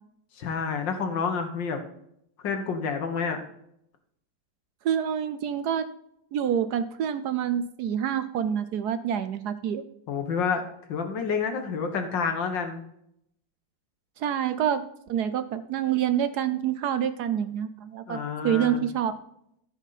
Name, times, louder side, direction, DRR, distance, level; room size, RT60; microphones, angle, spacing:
voice 1, 0.4-1.8 2.4-3.4 10.1-10.6 10.9-12.8 18.1-18.9, left 5 dB, 75° left, 6 dB, 2.0 m, -29 dB
voice 2, 4.8-5.9 6.3-9.8 14.2-14.8 15.1-19.1, right 9 dB, 70° right, 11 dB, 1.1 m, -27 dB
14.0 x 5.4 x 4.1 m, 0.74 s
omnidirectional pair, 2.0 m